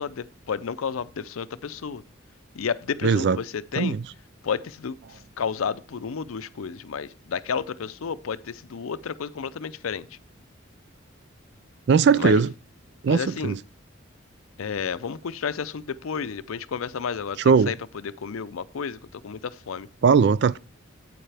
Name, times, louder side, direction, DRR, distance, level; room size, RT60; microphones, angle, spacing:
voice 1, 0.0-2.0 2.5-3.9 4.4-10.1 12.2-12.4 13.1-13.6 14.6-17.7 18.2-19.9, left 6 dB, 90° left, 0.5 m, -31 dB
voice 2, 3.0-3.4 3.8-4.0 11.9-12.5 13.0-13.6 17.4-17.7 20.0-20.6, right 5 dB, 55° right, 0.3 m, -19 dB
8.7 x 8.3 x 3.4 m
head